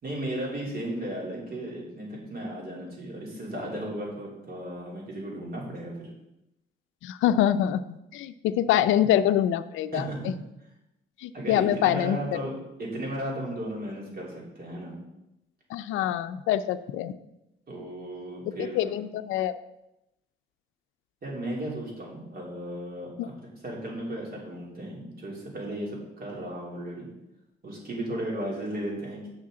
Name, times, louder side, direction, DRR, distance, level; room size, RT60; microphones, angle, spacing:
voice 1, 0.0-6.1 9.9-10.3 11.3-12.5 12.8-15.0 17.7-18.9 21.2-27.1 27.6-29.3, right 1 dB, 50° right, -3 dB, 3.1 m, -35 dB
voice 2, 7.0-10.1 11.2-12.2 15.7-17.1 18.6-19.5 23.2-23.3, left 11 dB, 90° left, 13 dB, 0.4 m, -25 dB
8.5 x 6.4 x 3.8 m, 0.89 s
cardioid pair, 90°, 20 cm